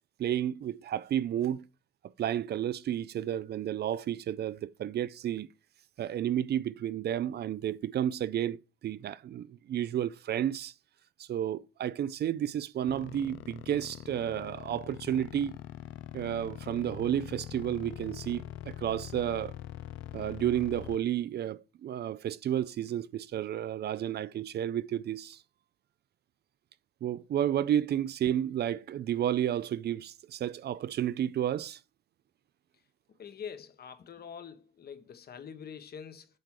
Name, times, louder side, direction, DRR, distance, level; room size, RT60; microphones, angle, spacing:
voice 1, 0.2-1.7 2.2-5.5 6.0-10.7 11.2-15.6 16.1-19.5 20.1-25.4 27.0-31.8, right 10 dB, 55° right, 0.5 m, -31 dB
sound 1, 12.9-21.0, left 12 dB, 90° left, 0.5 m, -43 dB
voice 2, 33.2-36.3, left 7 dB, 55° left, 1.0 m, -45 dB
7.7 x 3.5 x 4.7 m
cardioid pair, 90°, 20 cm